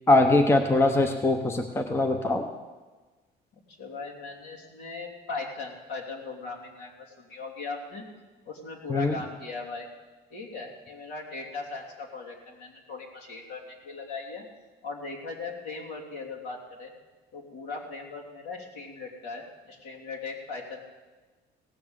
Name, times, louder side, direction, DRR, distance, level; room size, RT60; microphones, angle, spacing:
voice 1, 0.1-2.5 8.9-9.1, left 2 dB, 15° left, 5 dB, 0.8 m, -22 dB
voice 2, 3.8-8.0 8.4-9.9 10.3-14.4 14.8-16.9 17.3-20.8, left 3 dB, 65° left, -2 dB, 3.2 m, -38 dB
17.5 x 7.2 x 7.3 m, 1.3 s
cardioid pair, 145°, 18 cm